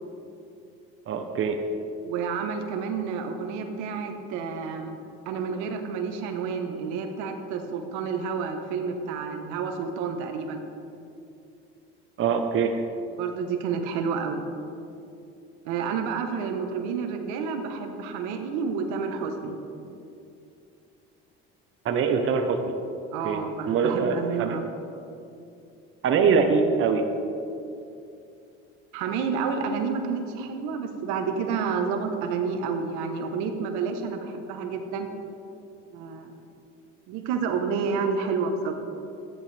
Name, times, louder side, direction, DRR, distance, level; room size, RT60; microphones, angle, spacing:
voice 1, 1.1-1.6 12.2-12.7 21.8-22.6 23.2-23.4 23.7-24.6 26.0-27.1, right 5 dB, 45° right, 5 dB, 1.0 m, -23 dB
voice 2, 2.0-5.0 5.2-10.6 13.2-14.4 15.6-19.6 23.1-24.7 28.9-35.1 35.9-36.3 37.1-38.7, right 5 dB, 80° right, 5 dB, 1.2 m, -29 dB
14.0 x 10.0 x 3.4 m, 2.6 s
supercardioid pair, 100°, 29 cm